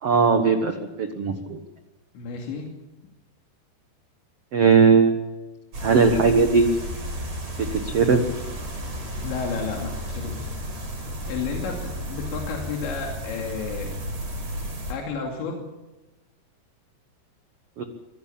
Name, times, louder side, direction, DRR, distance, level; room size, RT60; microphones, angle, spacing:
voice 1, 0.0-1.6 4.5-5.1 5.8-6.6 7.7-8.2 17.8-17.9, right 5 dB, 85° right, 6 dB, 1.3 m, -19 dB
voice 2, 2.1-2.7 9.2-10.5 11.2-14.0 14.9-15.7, left 5 dB, 90° left, 1 dB, 4.9 m, -31 dB
sound 1, 5.7-14.9, equal, 40° right, 6.5 m, -33 dB
24.5 x 16.0 x 8.6 m, 1.1 s
omnidirectional pair, 5.0 m